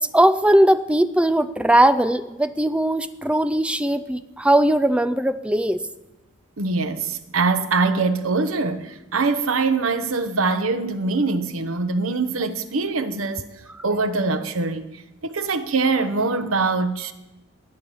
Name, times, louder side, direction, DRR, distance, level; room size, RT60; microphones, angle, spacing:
voice 1, 0.0-5.8, right 1 dB, 5° right, 0.4 m, -19 dB
voice 2, 6.6-13.5 13.8-17.1, right 3 dB, 85° right, 1.0 m, -23 dB
13.0 x 10.0 x 7.1 m
head